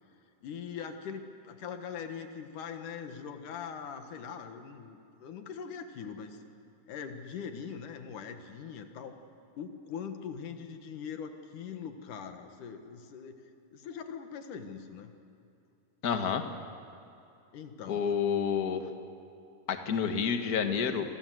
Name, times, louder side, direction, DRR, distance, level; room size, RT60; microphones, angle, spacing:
voice 1, 0.4-6.4 6.9-9.2 9.6-13.4 13.7-15.1 17.5-18.1, left 7 dB, 70° left, 6 dB, 2.9 m, -42 dB
voice 2, 16.0-16.4 17.9-18.9 19.7-21.2, left 7 dB, 45° left, 6 dB, 1.3 m, -29 dB
28.5 x 24.5 x 7.8 m, 2.6 s
omnidirectional pair, 3.8 m